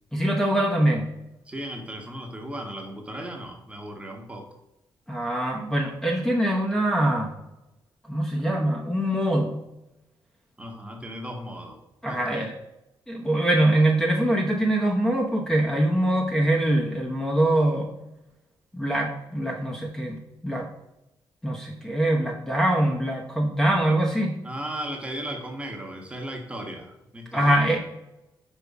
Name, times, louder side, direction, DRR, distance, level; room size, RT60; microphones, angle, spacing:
voice 1, 0.1-1.1 5.1-7.3 8.1-9.6 12.0-12.5 13.1-18.0 18.7-20.7 21.4-24.4 27.3-27.8, right 1 dB, 5° left, -1 dB, 1.0 m, -23 dB
voice 2, 1.4-4.5 10.6-11.8 12.1-12.5 24.4-27.8, right 1 dB, 15° right, 2 dB, 1.2 m, -36 dB
5.5 x 4.6 x 4.7 m, 0.91 s
cardioid pair, 115°, 8 cm